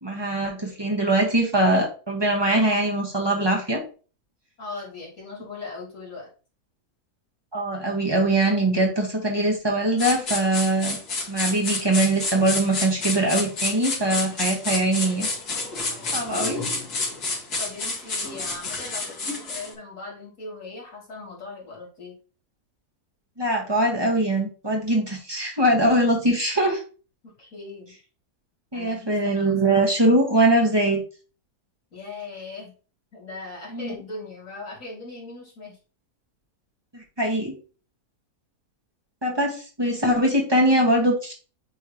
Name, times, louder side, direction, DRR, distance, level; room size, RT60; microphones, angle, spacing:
voice 1, 0.0-3.8 7.5-11.0 11.3-15.3 16.1-16.6 23.4-26.8 28.7-31.0 33.7-33.9 36.9-37.6 39.2-41.3, right 1 dB, 15° right, 0 dB, 1.5 m, -22 dB
voice 2, 4.6-6.3 15.9-16.3 17.6-22.1 27.2-27.9 28.7-29.8 31.9-32.7 33.1-35.8, left 3 dB, 55° left, -4 dB, 3.3 m, -39 dB
sound 1, 10.0-19.7, left 3 dB, 85° left, 2.4 m, -29 dB
9.4 x 3.6 x 3.0 m, 0.36 s
omnidirectional pair, 1.6 m